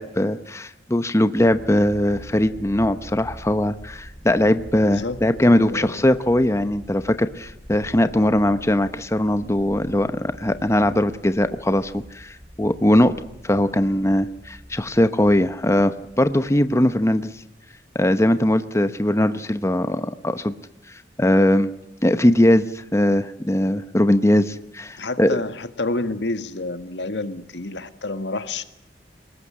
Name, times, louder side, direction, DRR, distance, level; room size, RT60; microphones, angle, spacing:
voice 1, 0.0-13.1 13.4-17.3 17.9-20.5 20.9-21.7 22.0-25.4, left 1 dB, 15° left, 11 dB, 0.8 m, -20 dB
sound 1, 1.3-17.8, equal, 20° right, 7.5 m, -45 dB
voice 2, 4.8-5.2 5.6-6.1 25.0-28.6, left 2 dB, 85° left, 10 dB, 1.7 m, -29 dB
23.0 x 20.0 x 8.7 m, 0.80 s
head